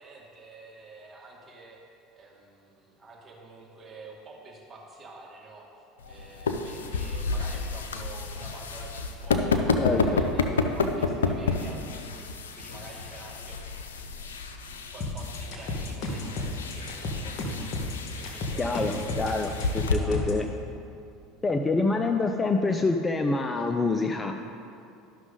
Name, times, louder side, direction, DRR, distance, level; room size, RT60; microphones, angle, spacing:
voice 1, 0.0-1.8 2.1-5.7 6.0-13.6 13.9-20.2, right 3 dB, 30° right, -3 dB, 2.2 m, -48 dB
sound 1, 6.0-19.9, left 4 dB, 85° left, 0.5 m, -30 dB
voice 2, 9.8-10.2 18.6-20.4 21.4-24.5, left 3 dB, 20° left, 5 dB, 0.5 m, -26 dB
sound 2, 15.0-20.4, left 2 dB, 55° left, 1.4 m, -32 dB
12.0 x 6.1 x 3.8 m, 2.5 s
hypercardioid pair, 80°, 0 cm